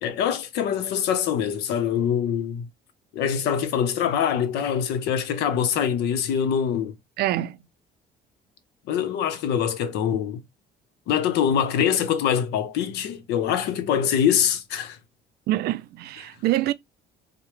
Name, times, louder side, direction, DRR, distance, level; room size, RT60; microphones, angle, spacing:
voice 1, 0.0-2.7 3.1-6.9 8.9-10.4 11.1-15.0, left 8 dB, 80° left, 0.8 m, -24 dB
voice 2, 7.2-7.6 15.5-16.7, right 15 dB, 70° right, 0.4 m, -25 dB
4.7 x 2.1 x 3.2 m
cardioid pair, 110°, 17 cm